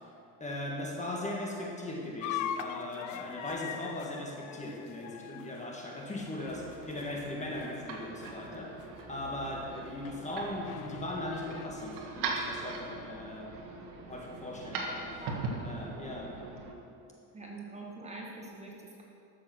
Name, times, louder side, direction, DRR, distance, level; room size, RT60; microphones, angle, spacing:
voice 1, 0.4-8.8 9.1-13.6 14.1-15.2 15.6-16.4, left 1 dB, 15° left, -1 dB, 1.5 m, -38 dB
sound 1, 2.2-7.3 7.6-7.9 8.2-8.4 9.0-9.1 10.0-11.7, left 10 dB, 45° left, 0.5 m, -42 dB
sound 2, 6.1-16.7, right 3 dB, 55° right, 1.9 m, -41 dB
voice 2, 15.2-16.0 17.3-19.0, right 2 dB, 15° right, -2 dB, 1.6 m, -45 dB
13.5 x 6.8 x 6.3 m, 2.6 s
cardioid pair, 140°, 40 cm